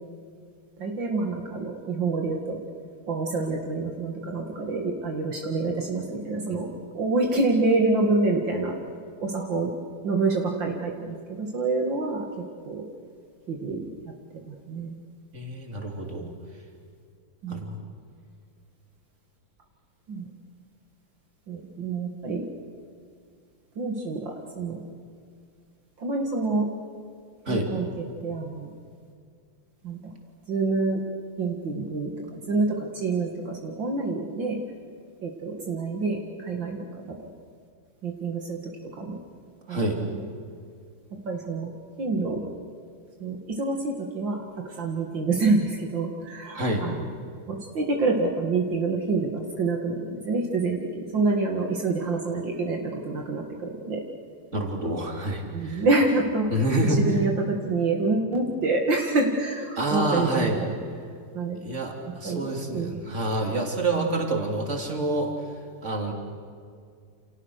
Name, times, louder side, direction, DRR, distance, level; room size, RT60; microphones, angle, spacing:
voice 1, 0.8-2.6 3.1-6.7 6.9-8.8 9.2-9.7 10.0-12.3 12.7-12.8 13.5-14.1 14.5-14.9 17.4-17.6 20.1-20.3 21.5-22.5 23.8-24.8 26.0-26.7 27.5-27.9 28.2-28.7 29.8-30.1 30.5-31.0 31.4-34.6 35.2-37.3 38.0-38.6 38.9-39.2 39.7-39.8 40.1-40.2 41.1-41.7 42.0-42.5 43.2-47.0 47.5-54.0 55.5-56.5 57.0-60.5 61.3-61.6 62.2-62.5 62.7-63.0, right 3 dB, 65° right, 1 dB, 2.7 m, -27 dB
voice 2, 15.3-16.3 17.5-17.8 27.5-27.7 39.7-40.0 46.5-46.9 54.5-55.9 56.5-57.0 59.8-60.6 61.6-65.3 65.8-66.1, right 2 dB, 35° right, 1 dB, 3.8 m, -27 dB
29.5 x 28.5 x 6.6 m, 2.3 s
omnidirectional pair, 2.2 m